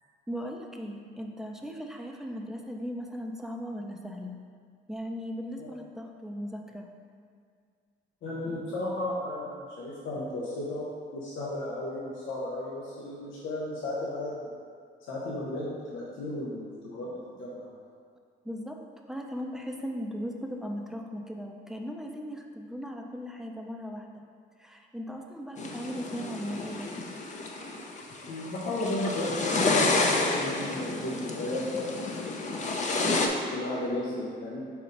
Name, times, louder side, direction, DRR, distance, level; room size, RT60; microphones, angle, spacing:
voice 1, 0.3-4.4 4.9-6.9 18.4-24.2 24.6-26.9, equal, ahead, 2 dB, 0.6 m, -38 dB
voice 2, 8.2-10.9 11.1-14.5 15.1-17.1 17.4-17.7 28.3-32.7 33.5-34.6, left 1 dB, 80° left, -5 dB, 1.0 m, -34 dB
sound 1, 25.6-33.3, left 3 dB, 35° left, 0.7 m, -30 dB
4.7 x 4.0 x 5.1 m, 2.2 s
cardioid pair, 90°, 20 cm